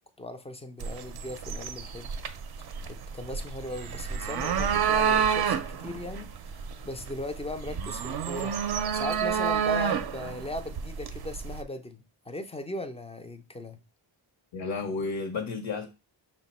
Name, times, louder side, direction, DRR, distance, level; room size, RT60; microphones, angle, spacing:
voice 1, 0.2-2.1 2.9-13.8, left 1 dB, 15° left, 0.4 m, -38 dB
sound 1, 0.8-11.6, right 7 dB, 55° right, 0.5 m, -29 dB
voice 2, 14.5-15.9, left 4 dB, 65° left, 0.8 m, -32 dB
5.8 x 2.2 x 4.1 m
wide cardioid pair, 150°, 47 cm